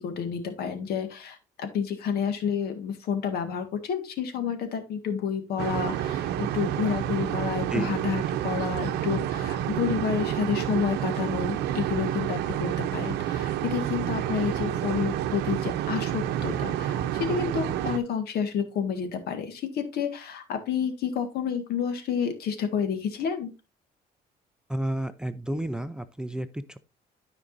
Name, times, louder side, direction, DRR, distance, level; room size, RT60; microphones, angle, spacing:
voice 1, 0.0-23.5, left 7 dB, 70° left, 1.8 m, -30 dB
sound 1, 5.6-18.0, right 11 dB, 80° right, 0.8 m, -29 dB
voice 2, 24.7-26.8, right 1 dB, 5° right, 0.5 m, -31 dB
13.0 x 5.1 x 2.6 m
cardioid pair, 110°, 17 cm